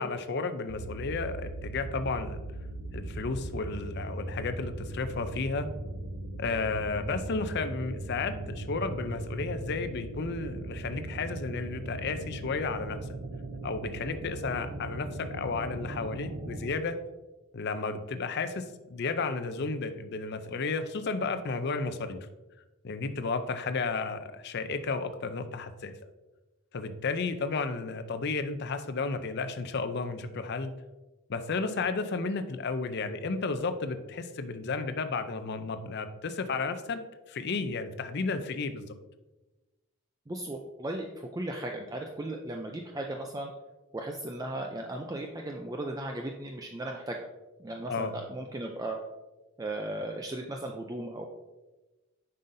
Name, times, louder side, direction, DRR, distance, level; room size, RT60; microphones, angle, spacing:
voice 1, 0.0-2.4 2.9-5.7 6.4-13.0 13.6-17.0 17.5-18.6 18.9-22.2 22.8-25.9 26.7-30.7 31.3-37.0 37.3-38.8 47.9-48.1, left 4 dB, 50° left, 10 dB, 0.5 m, -33 dB
sound 1, 0.7-16.7, right 2 dB, 70° right, 0.7 m, -39 dB
voice 2, 40.3-43.5 43.9-47.3 47.6-49.0 49.6-51.2, right 1 dB, 15° right, 2 dB, 0.3 m, -36 dB
7.5 x 5.5 x 2.6 m, 1.1 s
head